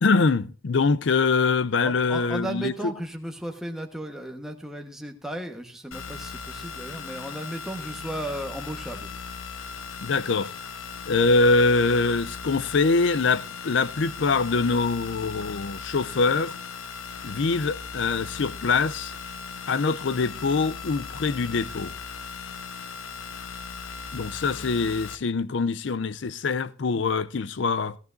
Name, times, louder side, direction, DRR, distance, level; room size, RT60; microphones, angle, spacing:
voice 1, 0.0-2.7 10.0-10.5 11.1-16.5 17.2-19.1 19.7-21.9 24.1-28.0, left 4 dB, 60° left, 0.5 m, -24 dB
voice 2, 1.8-9.3 9.6-9.9, right 1 dB, ahead, 1.2 m, -35 dB
sound 1, 5.9-25.2, left 5 dB, 90° left, 0.9 m, -38 dB
17.0 x 14.5 x 2.6 m
head